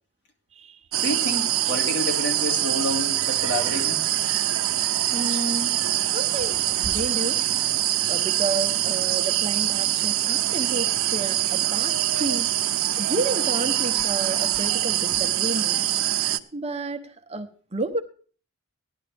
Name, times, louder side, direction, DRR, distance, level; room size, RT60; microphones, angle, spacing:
sound 1, 0.9-16.4, right 13 dB, 65° right, 0.7 m, -24 dB
voice 1, 1.0-4.0, left 1 dB, 55° left, 2.2 m, -29 dB
voice 2, 5.1-7.4 8.1-12.5 13.0-15.8 16.5-18.0, right 2 dB, 30° right, 0.8 m, -31 dB
16.0 x 11.0 x 3.4 m
head